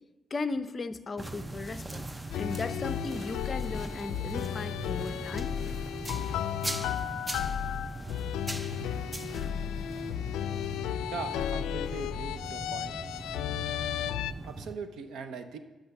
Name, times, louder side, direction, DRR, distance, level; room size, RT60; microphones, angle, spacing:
voice 1, 0.3-2.0 2.4-5.5, left 3 dB, 35° left, 11 dB, 0.6 m, -36 dB
sound 1, 1.2-14.7, right 2 dB, 15° right, 0.5 m, -40 dB
sound 2, 2.3-14.3, left 10 dB, 90° left, 0.4 m, -34 dB
voice 2, 11.0-13.0 14.4-15.6, right 5 dB, 75° right, 9 dB, 0.8 m, -40 dB
12.0 x 6.0 x 5.9 m, 1.2 s
cardioid pair, 90°, 0 cm